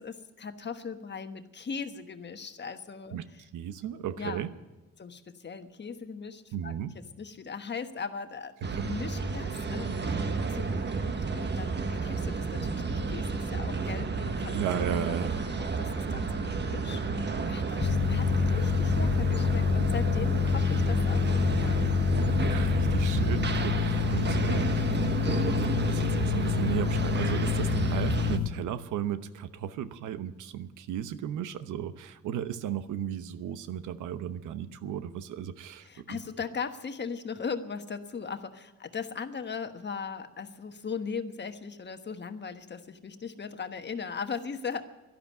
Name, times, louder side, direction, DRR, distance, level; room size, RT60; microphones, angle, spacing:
voice 1, 0.0-3.4 4.2-4.5 5.0-8.5 8.8-14.5 14.9-15.1 15.6-21.9 22.3-22.4 35.8-44.8, left 5 dB, 35° left, 8 dB, 1.3 m, -39 dB
voice 2, 3.5-4.5 6.5-6.9 8.8-8.9 14.5-15.4 22.5-36.2, right 9 dB, 85° right, 12 dB, 1.0 m, -35 dB
sound 1, 8.6-28.4, right 4 dB, 35° right, 1.3 m, -31 dB
sound 2, 17.8-28.5, left 8 dB, 65° left, 1.0 m, -27 dB
sound 3, 19.8-25.1, right 4 dB, 55° right, 1.3 m, -44 dB
12.0 x 12.0 x 9.6 m, 1.1 s
cardioid pair, 90°, 30 cm